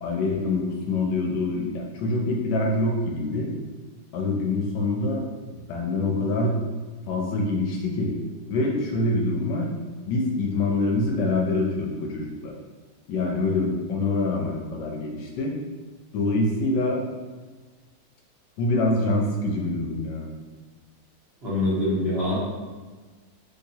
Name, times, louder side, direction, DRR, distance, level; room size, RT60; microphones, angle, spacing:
voice 1, 0.0-3.5 4.1-6.6 7.1-8.1 8.5-9.7 10.1-12.5 13.1-15.5 16.1-17.0 18.6-20.3, left 2 dB, 75° left, 0 dB, 1.1 m, -25 dB
voice 2, 21.4-22.3, left 1 dB, 45° right, -10 dB, 1.0 m, -24 dB
3.4 x 2.7 x 2.7 m, 1.4 s
omnidirectional pair, 2.0 m